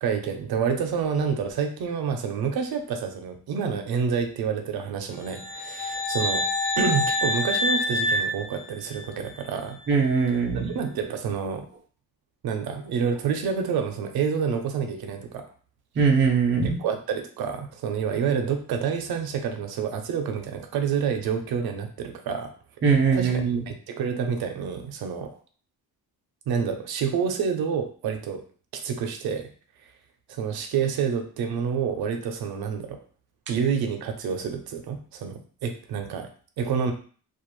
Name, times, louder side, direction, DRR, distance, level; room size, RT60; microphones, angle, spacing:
voice 1, 0.0-6.4 6.8-9.8 10.7-11.6 12.4-15.4 16.8-22.5 23.1-25.3 26.5-28.4 28.7-29.5 30.3-33.0 33.5-36.3 36.6-36.9, right 6 dB, 80° right, 5 dB, 0.5 m, -28 dB
sound 1, 5.3-9.3, left 1 dB, 70° left, 1.1 m, -27 dB
voice 2, 9.9-10.7 16.0-16.8 22.8-23.6, right 5 dB, 35° right, 1 dB, 0.4 m, -21 dB
2.4 x 2.2 x 3.0 m, 0.43 s
wide cardioid pair, 175°, 36 cm